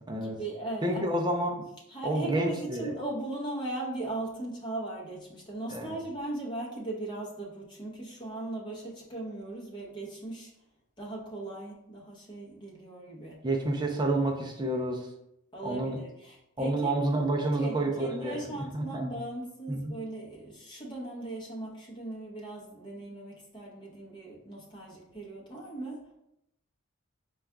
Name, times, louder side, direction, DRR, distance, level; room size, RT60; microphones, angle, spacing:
voice 1, 0.1-1.0 1.9-10.5 11.0-13.4 15.5-16.9 17.6-26.0, right 2 dB, 20° left, -4 dB, 0.9 m, -38 dB
voice 2, 0.8-1.6 2.0-2.9 5.7-6.0 13.4-15.1 15.6-16.0 16.6-19.1 19.7-19.9, right 2 dB, 20° right, 1 dB, 0.5 m, -29 dB
4.1 x 2.4 x 3.5 m, 0.81 s
head